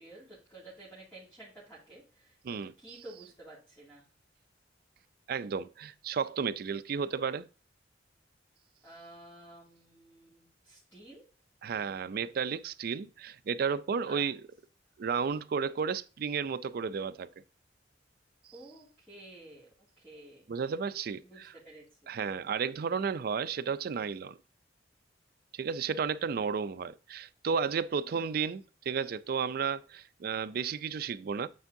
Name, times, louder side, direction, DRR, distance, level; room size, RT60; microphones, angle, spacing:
voice 1, 0.0-4.1 8.8-11.2 14.1-14.3 18.5-20.5 21.2-22.1 28.0-28.3, right 1 dB, 10° left, 2.3 m, -52 dB
voice 2, 5.3-7.5 11.6-14.4 15.0-17.3 20.5-21.5 22.1-24.4 25.5-31.5, right 6 dB, 55° right, 0.4 m, -33 dB
8.4 x 4.5 x 2.6 m
head